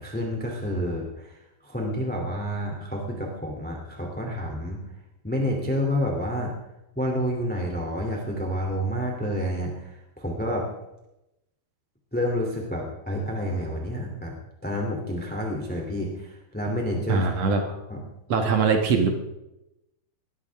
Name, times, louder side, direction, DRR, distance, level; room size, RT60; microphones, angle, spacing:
voice 1, 0.0-1.4 1.6-4.8 5.2-6.5 6.9-10.7 12.1-14.3 14.6-17.3 17.6-18.0 18.4-18.5, equal, 5° left, 0 dB, 1.5 m, -29 dB
voice 2, 17.1-17.6 18.3-19.2, right 4 dB, 75° right, 4 dB, 1.5 m, -22 dB
21.5 x 16.5 x 3.6 m, 0.91 s
omnidirectional pair, 5.3 m